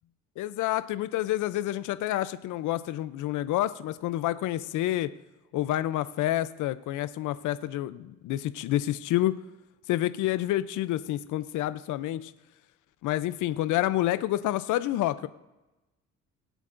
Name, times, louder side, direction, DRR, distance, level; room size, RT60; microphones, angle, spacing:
voice 1, 0.4-5.1 5.5-9.4 9.9-12.3 13.0-15.3, left 14 dB, 80° left, 14 dB, 0.5 m, -28 dB
20.0 x 8.2 x 2.5 m, 1.1 s
cardioid pair, 90°, 30 cm